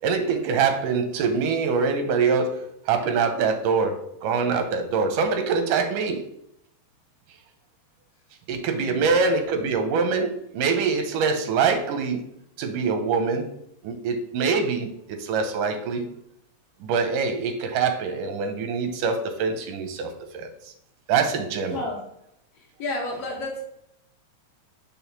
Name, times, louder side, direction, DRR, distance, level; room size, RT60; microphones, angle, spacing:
voice 1, 0.0-6.2 8.5-12.2 12.6-13.5 13.8-16.1 16.8-20.7 21.1-21.8, right 5 dB, 90° right, 6 dB, 2.4 m, -24 dB
voice 2, 21.7-22.0 22.5-23.6, left 2 dB, 70° left, 0 dB, 1.6 m, -31 dB
6.2 x 3.4 x 6.0 m, 0.76 s
omnidirectional pair, 3.5 m